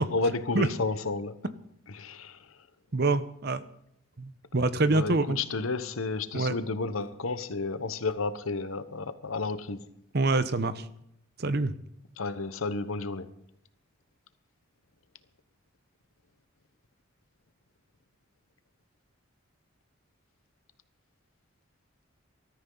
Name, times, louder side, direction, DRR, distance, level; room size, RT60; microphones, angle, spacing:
voice 1, 0.0-1.4 1.9-2.6 4.8-9.8 12.2-13.3, left 3 dB, 80° left, 1.0 m, -32 dB
voice 2, 2.9-3.7 4.2-5.4 6.3-6.5 10.1-10.9 11.4-11.7, right 2 dB, 50° right, 0.8 m, -26 dB
19.5 x 13.5 x 3.9 m
head